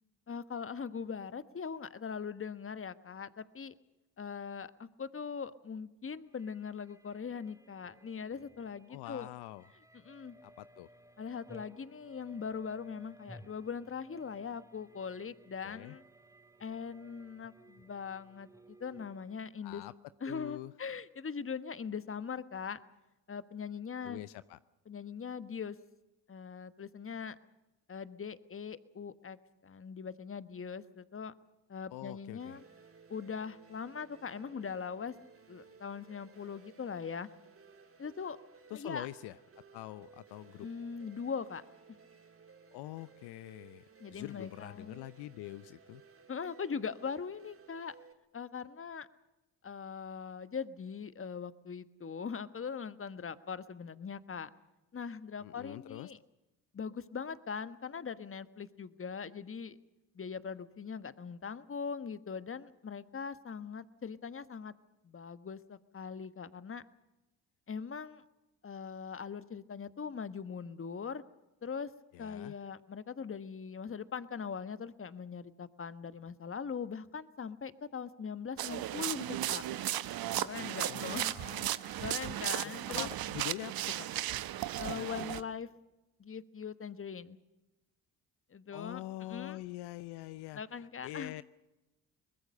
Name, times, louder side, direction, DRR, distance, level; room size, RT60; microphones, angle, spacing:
voice 1, 0.3-3.7 4.2-9.3 10.0-10.4 11.2-16.0 16.6-19.8 20.2-22.8 23.3-24.2 24.9-25.8 26.3-27.4 27.9-29.4 29.6-31.3 31.7-32.6 33.1-35.1 35.5-37.3 38.0-38.4 38.7-39.1 40.6-42.0 44.0-45.0 46.3-47.9 48.3-49.1 49.6-54.5 54.9-56.2 56.7-59.8 60.1-64.7 65.0-66.8 67.7-68.2 68.6-71.2 71.6-71.9 72.2-79.6 80.4-81.4 81.8-83.1 84.8-85.7 86.2-87.4 88.5-89.0 89.3-89.6 90.5-91.3, left 6 dB, 30° left, 14 dB, 1.3 m, -41 dB
sound 1, 6.3-19.4, right 1 dB, 10° right, 3.5 m, -59 dB
voice 2, 8.9-9.7 10.4-10.9 15.6-16.0 19.6-19.9 20.3-20.7 24.0-24.6 31.9-32.6 38.7-39.4 39.7-40.7 42.7-46.0 55.4-56.1 72.1-72.5 80.9-81.8 82.6-84.1 84.8-85.1 88.7-91.4, left 16 dB, 75° left, 16 dB, 0.7 m, -45 dB
sound 2, 32.4-48.1, right 5 dB, 35° right, 2.9 m, -59 dB
sound 3, 78.6-85.4, right 13 dB, 60° right, 1.0 m, -35 dB
23.5 x 20.5 x 6.6 m, 1.0 s
hypercardioid pair, 55°, 40 cm